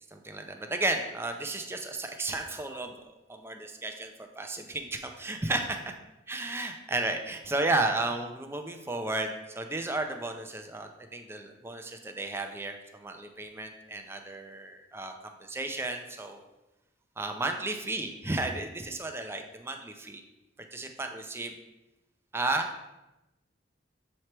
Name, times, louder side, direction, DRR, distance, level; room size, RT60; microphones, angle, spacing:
voice 1, 0.1-2.9 3.3-5.8 6.3-15.1 15.4-16.4 17.2-20.2 20.7-21.5 22.3-22.7, right 2 dB, 15° right, 5 dB, 0.5 m, -33 dB
7.0 x 3.2 x 4.4 m, 0.98 s
head